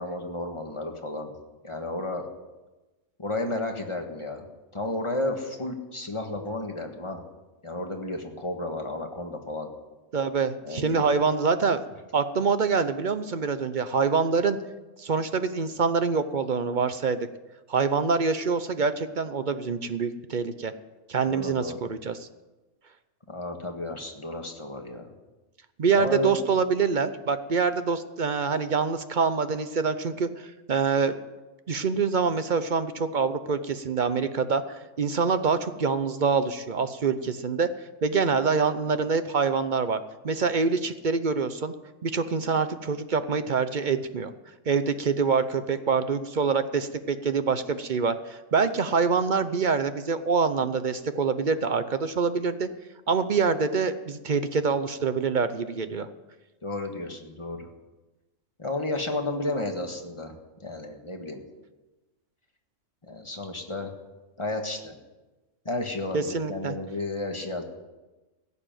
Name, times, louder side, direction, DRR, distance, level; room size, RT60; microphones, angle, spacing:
voice 1, 0.0-1.3 1.6-2.3 3.2-4.4 4.7-7.2 7.6-9.7 10.6-11.0 21.3-21.8 23.3-25.1 25.9-26.4 56.6-57.7 58.6-61.4 63.0-63.9 64.4-64.9 65.6-67.6, left 2 dB, 25° left, 3 dB, 1.6 m, -32 dB
voice 2, 10.1-11.8 12.1-14.6 15.0-17.3 17.7-20.7 21.1-22.3 25.8-31.2 31.7-37.7 38.0-40.0 40.2-41.7 42.0-44.3 44.7-52.7 53.1-56.1 66.1-66.7, right 5 dB, 45° right, 11 dB, 0.7 m, -25 dB
16.5 x 6.9 x 9.1 m, 1.1 s
omnidirectional pair, 1.3 m